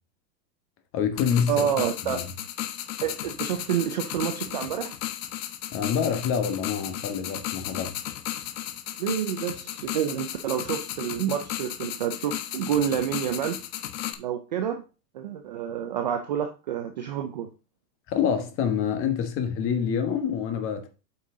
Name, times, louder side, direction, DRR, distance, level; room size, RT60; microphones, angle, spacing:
voice 1, 0.9-1.7 2.0-2.3 5.7-7.9 18.1-20.9, left 7 dB, 25° left, 1.3 m, -26 dB
sound 1, 1.2-14.1, left 12 dB, 50° left, 1.1 m, -35 dB
voice 2, 1.5-2.2 3.0-5.0 9.0-13.6 14.2-14.8 15.1-17.5, right 9 dB, 30° right, 0.4 m, -28 dB
8.3 x 5.6 x 3.7 m
supercardioid pair, 155°, 50 cm